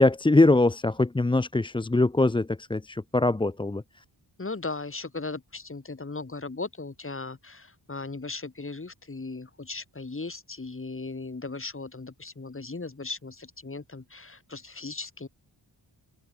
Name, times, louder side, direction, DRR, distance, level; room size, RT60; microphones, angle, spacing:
voice 1, 0.0-4.0, left 2 dB, 10° left, 0.6 m, -22 dB
voice 2, 4.4-15.3, left 3 dB, 30° left, 4.2 m, -37 dB
wide cardioid pair, 100°, 45 cm